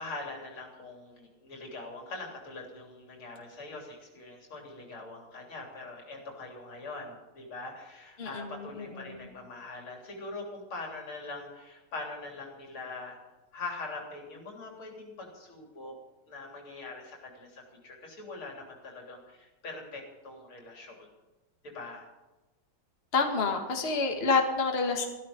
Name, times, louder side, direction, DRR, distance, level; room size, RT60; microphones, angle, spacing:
voice 1, 0.0-13.2 13.5-16.0 16.3-21.1 21.7-22.1, left 3 dB, 85° left, 0 dB, 4.2 m, -42 dB
voice 2, 8.2-9.3 23.1-25.1, left 4 dB, 30° left, 3 dB, 2.0 m, -28 dB
14.5 x 13.5 x 5.2 m, 1.1 s
omnidirectional pair, 2.3 m